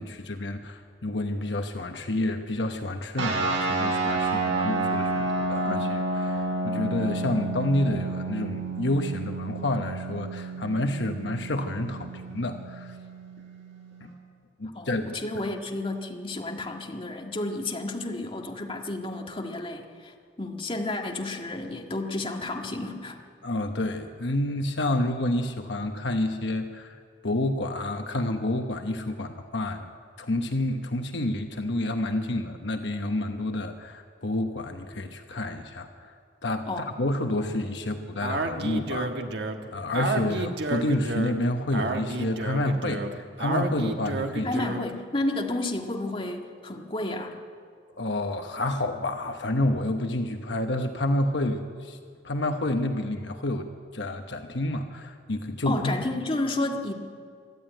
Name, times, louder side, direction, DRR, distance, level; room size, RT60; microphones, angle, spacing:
voice 1, 0.0-5.9 6.2-13.0 14.0-14.1 14.6-15.2 23.4-27.0 27.2-29.9 30.2-36.1 36.4-39.1 39.7-44.5 48.0-52.0 52.2-55.9, left 1 dB, 70° left, 5 dB, 1.1 m, -29 dB
sound 1, 3.2-14.1, right 3 dB, 85° right, 5.8 m, -30 dB
voice 2, 14.7-23.2 36.7-36.9 44.4-47.3 55.6-56.9, left 2 dB, 30° left, 2 dB, 1.7 m, -31 dB
Speech, 38.2-45.0, right 2 dB, 60° right, 1.5 m, -31 dB
23.5 x 13.0 x 9.1 m, 2.1 s
head